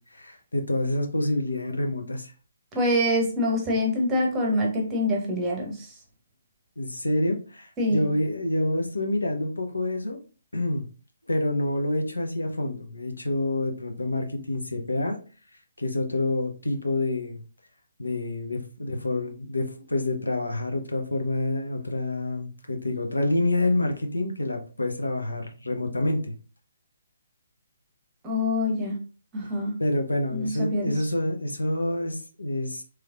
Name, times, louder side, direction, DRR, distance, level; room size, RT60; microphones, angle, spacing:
voice 1, 0.1-2.3 6.8-10.2 10.5-10.9 11.3-15.2 15.8-17.4 18.0-26.3 29.8-32.8, left 1 dB, 75° left, 4 dB, 0.7 m, -27 dB
voice 2, 2.7-5.9 7.8-8.1 28.2-29.0 29.3-29.8 30.3-31.0, left 1 dB, 15° right, 0 dB, 0.8 m, -25 dB
3.2 x 3.1 x 2.3 m, 0.37 s
figure-of-eight pair, 135°, 0 cm